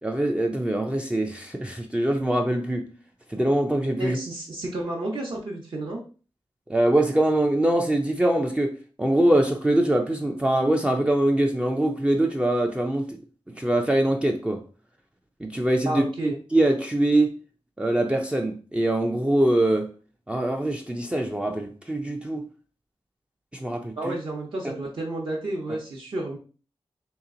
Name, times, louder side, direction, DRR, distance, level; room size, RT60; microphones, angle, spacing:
voice 1, 0.0-2.9 3.3-4.2 6.7-13.2 13.5-14.6 15.4-17.4 17.8-19.9 20.3-22.5 23.5-24.1, right 1 dB, 10° right, 0.4 m, -23 dB
voice 2, 4.0-6.0 15.8-16.4 24.0-26.4, right 1 dB, 55° right, 0.8 m, -31 dB
3.3 x 2.9 x 3.7 m
wide cardioid pair, 135°, 10 cm